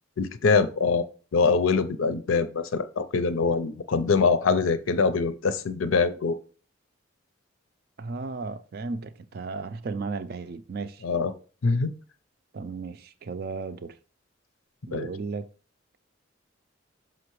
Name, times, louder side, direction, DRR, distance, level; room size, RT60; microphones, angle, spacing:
voice 1, 0.2-1.1 1.3-6.4 11.0-11.3 11.6-11.9 14.9-15.1, left 4 dB, 85° left, 0.6 m, -24 dB
voice 2, 8.0-11.0 12.5-14.0 14.8-15.5, right 4 dB, 50° right, 0.4 m, -35 dB
6.0 x 5.6 x 3.1 m
head